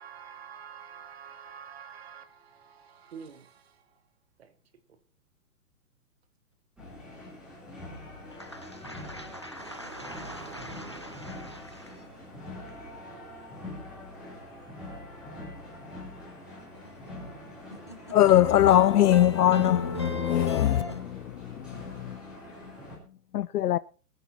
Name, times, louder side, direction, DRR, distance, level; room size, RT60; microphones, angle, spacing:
voice 1, 0.0-3.7 4.4-4.5, right 7 dB, 40° right, 1.4 m, -47 dB
sound 1, 6.8-23.0, left 1 dB, ahead, 3.3 m, -44 dB
voice 2, 8.3-12.1 16.6-17.2 17.7-21.0, left 1 dB, 20° left, 0.5 m, -39 dB
sound 2, 9.6-15.0 15.4-15.5 18.6-18.7, right 5 dB, 20° right, 1.2 m, -51 dB
voice 3, 18.1-20.8 21.7-22.2 23.3-23.8, left 13 dB, 70° left, 0.5 m, -21 dB
23.0 x 10.5 x 2.9 m
hypercardioid pair, 175°, 47 cm